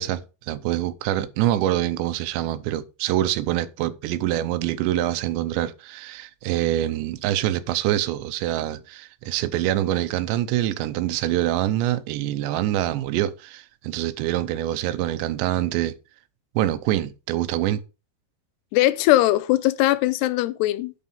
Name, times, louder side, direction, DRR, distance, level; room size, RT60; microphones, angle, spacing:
voice 1, 0.0-15.9 16.6-17.8, right 13 dB, 85° right, 2.9 m, -25 dB
voice 2, 18.7-20.9, left 16 dB, 80° left, 2.5 m, -20 dB
11.0 x 5.4 x 5.5 m
omnidirectional pair, 5.3 m